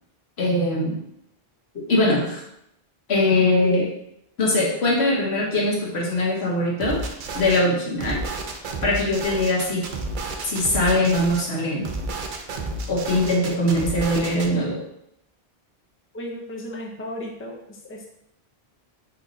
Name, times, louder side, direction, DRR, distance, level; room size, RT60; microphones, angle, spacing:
voice 1, 0.4-0.9 1.9-2.4 3.1-3.9 4.4-7.0 7.3-8.2 8.8-9.8 10.4-11.9 12.9-14.8, left 1 dB, 90° left, -3 dB, 1.5 m, -21 dB
sound 1, 6.8-7.6 8.0-11.4 11.8-14.5, right 2 dB, 60° right, 0.7 m, -31 dB
voice 2, 16.1-17.6 17.8-18.1, left 1 dB, 15° left, 0 dB, 0.5 m, -34 dB
4.5 x 2.9 x 3.9 m, 0.76 s
omnidirectional pair, 1.0 m